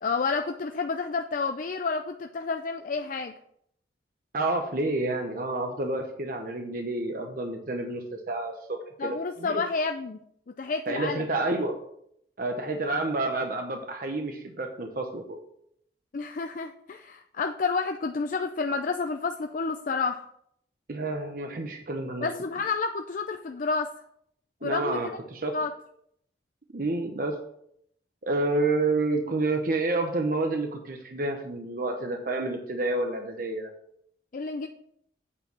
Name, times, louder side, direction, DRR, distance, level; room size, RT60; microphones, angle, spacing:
voice 1, 0.0-3.3 9.0-10.2 10.6-11.2 16.1-20.2 22.2-23.9 24.6-25.0 25.5-25.7 34.3-34.7, left 4 dB, 50° left, 6 dB, 0.4 m, -30 dB
voice 2, 4.3-9.6 10.9-11.7 12.4-15.4 20.9-22.3 24.6-25.5 26.7-27.4 28.2-33.7, right 2 dB, 50° right, 3 dB, 0.9 m, -29 dB
8.6 x 4.6 x 6.1 m, 0.72 s
head